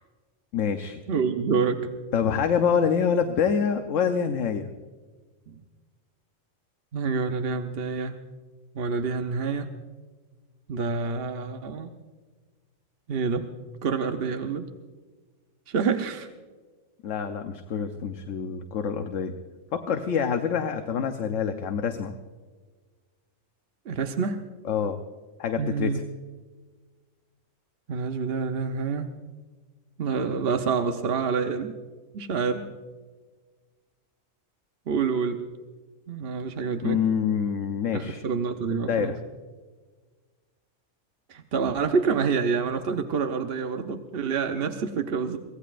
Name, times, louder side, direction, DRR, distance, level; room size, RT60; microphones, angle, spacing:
voice 1, 0.5-1.0 2.1-4.7 17.0-19.3 19.7-22.1 24.6-25.0 25.4-26.0 36.8-38.2 38.9-39.2, left 7 dB, 75° left, 6 dB, 1.2 m, -26 dB
voice 2, 1.1-1.9 5.5-5.6 6.9-8.2 8.7-9.7 10.7-11.9 13.1-13.5 13.8-14.7 15.7-16.3 23.8-24.5 25.6-26.0 27.9-29.1 30.0-31.7 32.1-32.7 34.9-35.4 36.1-37.0 37.9-39.1 41.3-45.4, right 5 dB, 55° right, 6 dB, 1.0 m, -27 dB
24.5 x 17.5 x 2.5 m, 1.4 s
omnidirectional pair, 1.3 m